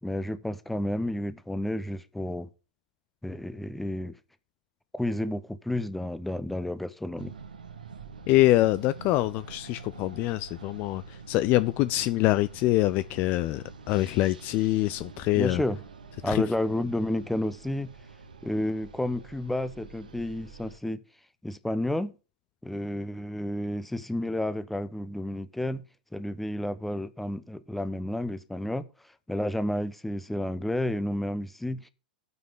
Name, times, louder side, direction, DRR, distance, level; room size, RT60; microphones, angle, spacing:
voice 1, 0.0-2.5 3.2-4.2 4.9-7.3 15.3-15.8 16.2-17.9 18.4-21.0 21.4-22.1 22.6-25.8 26.1-28.9 29.3-31.9, left 1 dB, 5° left, 0.9 m, -31 dB
sound 1, 7.2-20.8, right 5 dB, 70° right, 1.2 m, -47 dB
voice 2, 8.3-11.0 11.3-15.6 16.3-16.4, left 16 dB, 35° left, 0.5 m, -25 dB
9.5 x 5.1 x 8.0 m
figure-of-eight pair, 95°, 5 cm